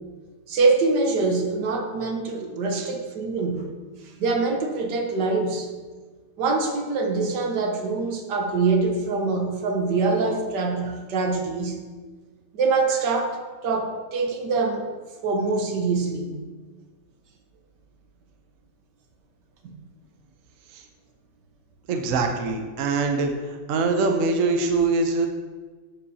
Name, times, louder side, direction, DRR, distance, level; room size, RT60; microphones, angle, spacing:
voice 1, 0.5-3.7 4.2-5.7 6.4-11.8 12.5-14.9 15.2-16.4 19.6-19.7, right 3 dB, 80° right, 4 dB, 1.5 m, -24 dB
voice 2, 21.9-23.3 23.7-25.3, right 3 dB, 60° right, 4 dB, 0.9 m, -23 dB
12.0 x 5.3 x 2.8 m, 1.4 s
omnidirectional pair, 1.8 m